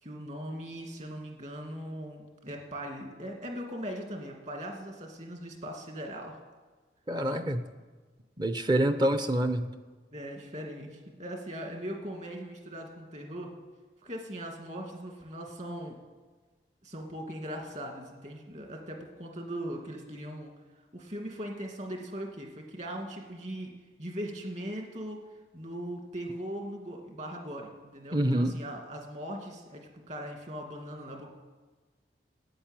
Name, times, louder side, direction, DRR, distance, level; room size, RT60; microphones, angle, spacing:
voice 1, 0.0-6.4 10.1-13.5 14.0-16.0 16.8-20.5 20.9-23.7 24.0-25.2 25.5-31.3, equal, 40° right, 2 dB, 2.3 m, -39 dB
voice 2, 7.1-7.6 8.4-9.7 28.1-28.6, right 1 dB, 25° right, 9 dB, 0.7 m, -26 dB
12.0 x 9.1 x 8.9 m, 1.4 s
head